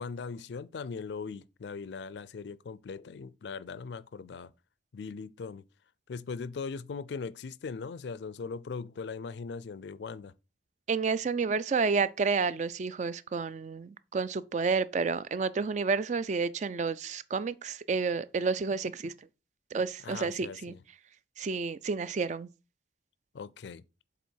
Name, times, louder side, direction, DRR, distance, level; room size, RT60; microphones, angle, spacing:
voice 1, 0.0-4.5 4.9-5.6 6.1-10.3 20.0-20.8 23.3-23.8, left 5 dB, 70° left, 0.4 m, -39 dB
voice 2, 10.9-19.1 19.7-20.7 21.4-22.5, right 4 dB, 40° right, 0.3 m, -30 dB
6.9 x 4.1 x 4.5 m
head